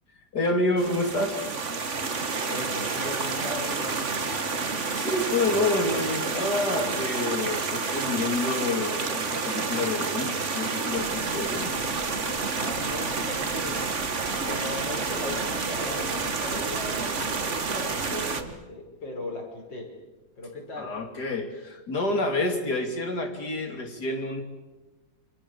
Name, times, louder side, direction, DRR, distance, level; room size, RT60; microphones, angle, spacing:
voice 1, 0.3-1.4 4.9-11.8 20.8-24.4, left 2 dB, 60° left, 5 dB, 3.6 m, -28 dB
sound 1, 0.8-18.4, right 4 dB, 40° right, 1.9 m, -29 dB
voice 2, 2.5-4.5 12.5-13.8 14.5-19.9 20.4-20.9, left 1 dB, 80° left, 0 dB, 6.4 m, -38 dB
sound 2, 11.0-18.5, right 3 dB, 80° right, 3.0 m, -42 dB
28.0 x 26.5 x 7.2 m, 1.1 s
omnidirectional pair, 2.0 m